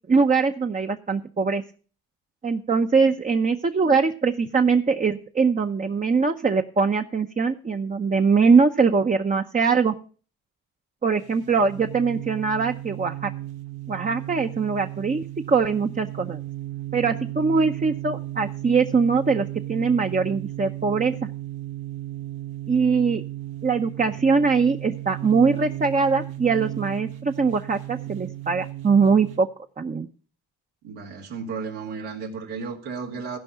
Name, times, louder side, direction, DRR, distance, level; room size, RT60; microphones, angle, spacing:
voice 1, 0.1-1.6 2.4-10.0 11.0-13.3 13.9-16.4 16.9-21.2 22.7-23.2 23.6-29.5 29.8-30.1, right 5 dB, 20° right, 0.7 m, -22 dB
sound 1, 11.2-29.4, right 15 dB, 70° right, 1.4 m, -35 dB
voice 2, 30.8-33.4, right 5 dB, 90° right, 2.3 m, -33 dB
15.5 x 5.3 x 5.7 m
supercardioid pair, 65°, 39 cm